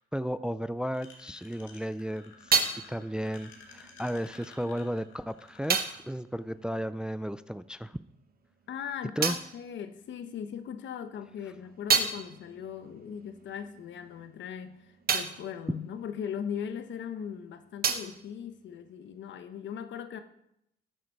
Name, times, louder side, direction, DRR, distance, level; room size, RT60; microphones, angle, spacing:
voice 1, 0.0-8.0 9.2-9.4, equal, 5° right, 14 dB, 0.3 m, -34 dB
sound 1, 0.9-6.0, left 5 dB, 85° left, 2.0 m, -53 dB
sound 2, 1.8-7.7 7.9-10.6 11.1-17.1 17.3-19.4, right 6 dB, 50° right, 1.2 m, -34 dB
voice 2, 8.7-20.2, left 8 dB, 70° left, 9 dB, 1.0 m, -39 dB
13.0 x 8.0 x 4.6 m, 0.80 s
cardioid pair, 90°, 20 cm